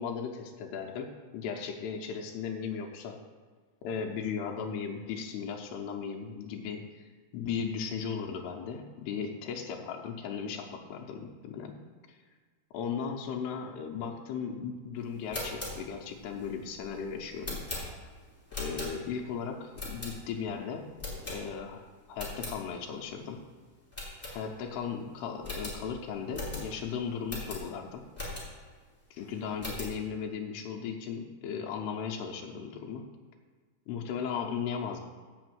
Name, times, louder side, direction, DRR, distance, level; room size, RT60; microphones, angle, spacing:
voice 1, 0.0-3.2 3.8-11.8 12.1-12.2 12.7-17.6 18.6-20.9 21.3-23.5 24.3-28.1 29.1-33.1 33.9-35.0, left 6 dB, 90° left, 2 dB, 2.9 m, -37 dB
sound 1, 15.1-19.3 19.7-20.5 21.0-21.8 22.1-22.6 23.0-23.1 23.4-23.5 23.9-24.8 25.1-25.2 25.4-28.7 29.2-30.0, left 2 dB, 5° left, 2.2 m, -40 dB
8.1 x 5.8 x 7.8 m, 1.5 s
omnidirectional pair, 4.7 m